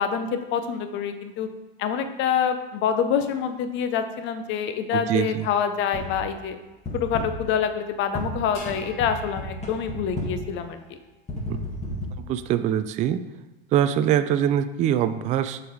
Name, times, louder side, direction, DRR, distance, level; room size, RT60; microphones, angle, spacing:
voice 1, 0.0-1.5 1.8-6.6 6.9-10.8, left 7 dB, 40° left, 8 dB, 0.8 m, -26 dB
voice 2, 4.9-5.5 11.5-11.6 12.2-13.2 13.7-15.6, right 10 dB, 25° right, 11 dB, 0.3 m, -23 dB
sound 1, 5.9-6.3 6.8-7.6 8.1-10.6 11.3-12.1, left 1 dB, 20° left, 1.8 m, -33 dB
sound 2, 8.5-11.1, left 2 dB, 65° left, 1.7 m, -46 dB
6.9 x 4.1 x 4.7 m, 1.1 s
hypercardioid pair, 95°, 31 cm